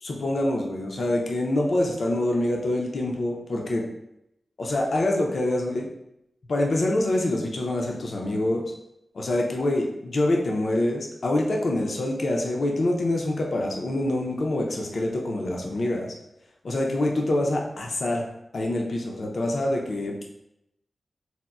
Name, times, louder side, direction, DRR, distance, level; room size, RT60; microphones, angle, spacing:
voice 1, 0.0-3.9 4.6-5.8 6.5-8.6 9.1-16.1 16.6-18.3 18.5-20.2, left 1 dB, 70° left, 0 dB, 0.5 m, -25 dB
4.0 x 2.0 x 2.3 m, 0.82 s
cardioid pair, 45°, 0 cm